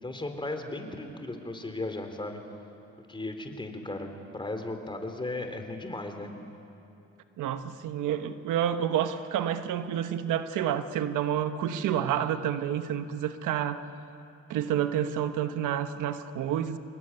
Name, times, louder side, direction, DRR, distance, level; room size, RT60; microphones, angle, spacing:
voice 1, 0.0-2.4 3.1-6.3, left 2 dB, 15° left, 6 dB, 3.7 m, -36 dB
voice 2, 7.4-13.8 14.5-16.8, right 10 dB, 85° right, 9 dB, 1.2 m, -29 dB
26.5 x 22.5 x 9.9 m, 2.8 s
cardioid pair, 90°, 30 cm